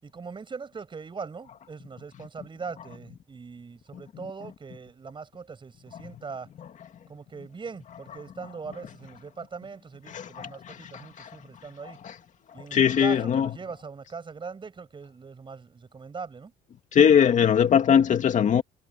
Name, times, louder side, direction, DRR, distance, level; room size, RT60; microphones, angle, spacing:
voice 1, 0.0-6.5 7.1-12.0 12.5-16.5, right 5 dB, 30° right, 7.6 m, -41 dB
voice 2, 10.1-10.9 11.2-11.3 12.0-12.1 12.7-13.5 16.9-18.6, left 8 dB, 45° left, 2.3 m, -21 dB
cardioid pair, 110°, 17 cm